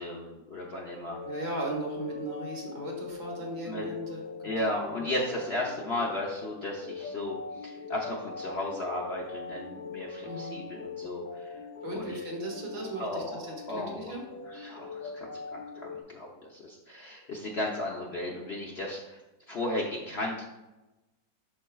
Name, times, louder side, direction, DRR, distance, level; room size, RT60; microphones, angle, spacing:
voice 1, 0.0-1.2 3.7-3.9 4.4-7.4 7.6-11.6 11.9-12.2 13.0-14.2 14.5-19.2 19.5-20.4, left 1 dB, 50° left, -2 dB, 0.8 m, -35 dB
sound 1, 1.1-16.0, left 4 dB, 70° left, 2.2 m, -42 dB
voice 2, 1.2-4.5 5.0-5.1 10.2-10.6 11.8-14.2, right 1 dB, 65° right, -1 dB, 2.1 m, -37 dB
12.0 x 4.3 x 2.3 m, 1.0 s
omnidirectional pair, 1.9 m